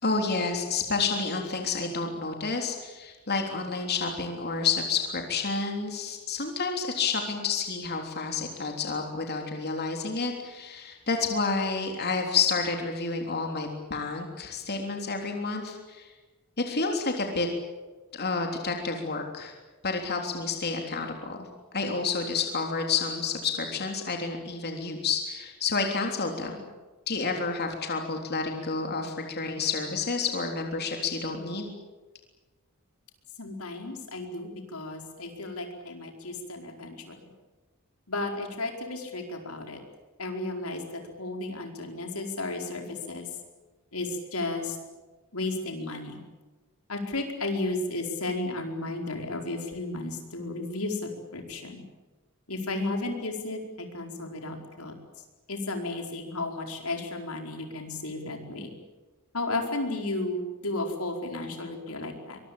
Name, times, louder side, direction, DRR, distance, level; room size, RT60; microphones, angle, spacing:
voice 1, 0.0-16.1 16.6-17.5 18.1-19.5 19.8-21.5 21.7-26.6 27.1-31.7, left 4 dB, 50° left, 3 dB, 3.5 m, -29 dB
voice 2, 33.4-37.2 38.1-39.8 40.2-43.3 43.9-44.8 45.3-46.2 46.9-51.8 52.5-54.9 55.5-58.7 59.3-62.4, left 2 dB, 85° left, 3 dB, 4.7 m, -33 dB
24.5 x 22.5 x 8.7 m, 1.2 s
head